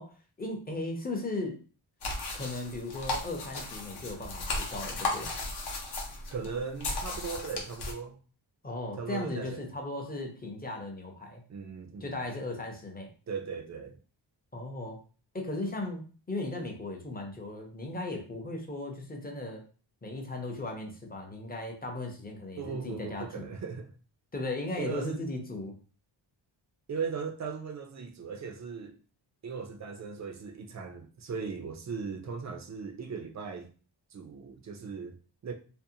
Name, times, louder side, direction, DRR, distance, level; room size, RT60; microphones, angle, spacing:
voice 1, 0.0-1.6 2.3-5.3 8.6-11.4 12.0-13.1 14.5-15.0 15.3-19.6 20.0-23.5 24.3-25.8, left 2 dB, 20° left, 0.5 m, -37 dB
sound 1, 2.0-7.9, left 2 dB, 60° left, 0.8 m, -35 dB
voice 2, 6.3-8.2 9.0-9.7 11.5-12.2 13.3-14.0 22.6-23.9 24.8-25.2 26.9-29.0 29.4-33.7 34.1-35.5, right 5 dB, 40° right, 0.4 m, -38 dB
2.6 x 2.0 x 2.6 m
wide cardioid pair, 120°, 46 cm